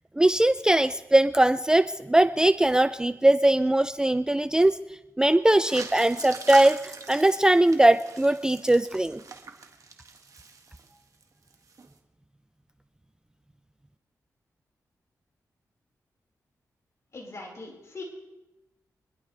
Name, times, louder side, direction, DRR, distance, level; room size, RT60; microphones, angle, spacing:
voice 1, 0.2-4.8 5.2-9.2, right 1 dB, 10° right, 12 dB, 0.4 m, -21 dB
sound 1, 5.5-11.2 11.5-11.9, right 4 dB, 60° right, 1.6 m, -42 dB
voice 2, 17.1-18.0, left 3 dB, 45° left, -2 dB, 4.6 m, -40 dB
25.5 x 11.0 x 3.3 m, 0.98 s
cardioid pair, 70°, 7 cm